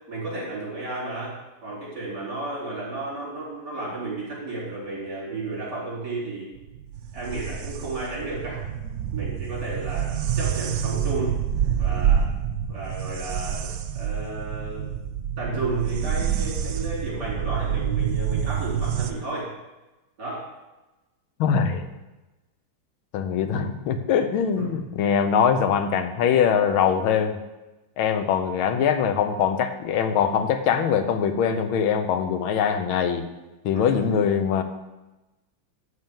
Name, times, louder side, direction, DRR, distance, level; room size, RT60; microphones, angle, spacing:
voice 1, 0.1-1.4 1.6-6.5 7.1-8.6 9.1-11.4 11.8-12.2 12.7-14.9 15.4-19.5 20.2-20.5 24.5-24.7 33.7-34.2, right 2 dB, 55° right, -6 dB, 4.8 m, -33 dB
sound 1, 6.5-19.1, right 8 dB, 75° right, 0.8 m, -27 dB
voice 2, 21.4-21.9 23.1-27.4 28.0-33.3 33.6-34.6, left 7 dB, 85° left, 9 dB, 1.6 m, -22 dB
13.0 x 4.3 x 7.2 m, 1.1 s
omnidirectional pair, 2.2 m